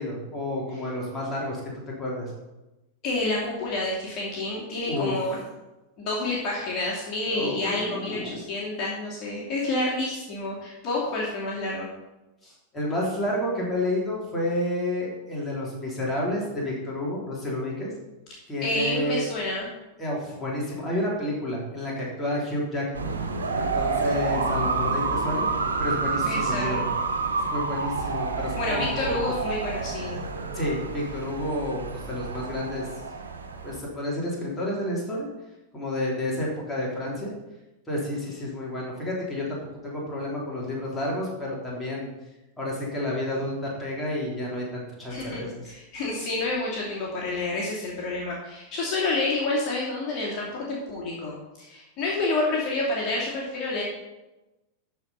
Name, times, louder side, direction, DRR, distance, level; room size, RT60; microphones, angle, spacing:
voice 1, 0.0-1.6 2.0-2.3 4.9-5.1 7.3-8.4 12.4-17.9 18.5-19.2 20.0-23.1 23.5-25.5 25.8-26.9 27.4-29.0 30.5-32.9 33.6-35.3 35.7-37.3 37.9-39.6 39.8-42.1 42.6-45.6, left 1 dB, 10° left, -5 dB, 3.4 m, -30 dB
voice 2, 3.0-5.4 6.0-11.9 18.6-19.7 26.2-26.8 28.6-30.2 45.1-53.8, left 2 dB, 35° left, -5 dB, 2.6 m, -29 dB
sound 1, 22.9-33.8, right 4 dB, 75° right, 1.2 m, -29 dB
13.0 x 4.7 x 5.6 m, 1.0 s
figure-of-eight pair, 90°, 0 cm